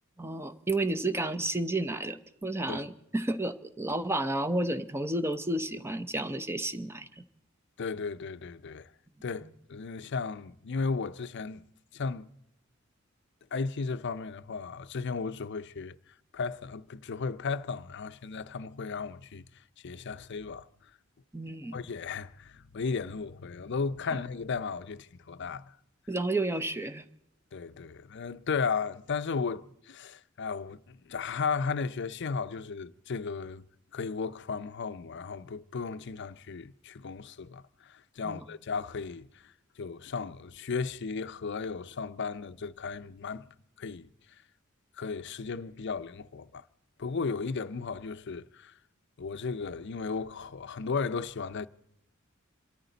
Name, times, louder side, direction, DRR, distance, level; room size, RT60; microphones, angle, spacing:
voice 1, 0.2-7.2 9.4-9.5 21.3-21.8 26.1-27.0 38.2-38.4, right 2 dB, 10° right, 0.7 m, -31 dB
voice 2, 7.8-8.9 9.2-11.6 11.9-12.3 13.5-16.0 16.3-19.4 19.8-20.7 21.7-25.7 27.5-33.6 33.9-39.3 39.8-43.5 43.8-44.1 45.0-46.6 47.0-48.7 49.2-51.7, left 5 dB, 55° left, 0.5 m, -35 dB
27.0 x 13.5 x 4.0 m
head